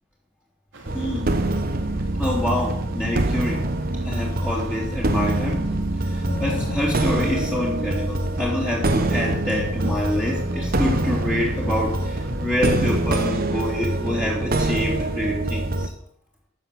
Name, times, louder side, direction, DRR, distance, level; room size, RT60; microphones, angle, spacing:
sound 1, 0.7-12.5, right 1 dB, 75° right, 2.7 m, -43 dB
voice 1, 0.9-1.3 2.2-3.7 4.0-5.6 6.0-15.9, left 1 dB, 10° left, -7 dB, 3.0 m, -27 dB
sound 2, 0.9-15.9, right 2 dB, 50° right, 1.2 m, -25 dB
sound 3, 6.3-13.1, left 2 dB, 70° left, 1.0 m, -37 dB
13.5 x 6.8 x 7.6 m, 0.68 s
head